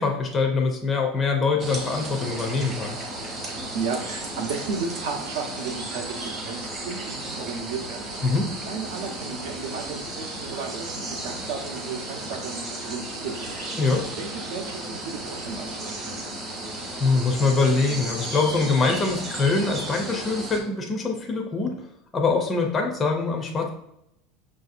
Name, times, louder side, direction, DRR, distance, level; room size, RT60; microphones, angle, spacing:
voice 1, 0.0-3.0 8.2-8.5 13.8-14.0 17.0-21.9 22.1-23.7, left 4 dB, 15° left, 1 dB, 0.4 m, -23 dB
sound 1, 1.6-20.6, right 1 dB, 25° right, 0.8 m, -34 dB
voice 2, 3.7-8.4 8.7-13.6 14.2-16.2, right 5 dB, 75° right, 3 dB, 0.7 m, -34 dB
6.0 x 2.6 x 2.5 m, 0.79 s
supercardioid pair, 175°, 0 cm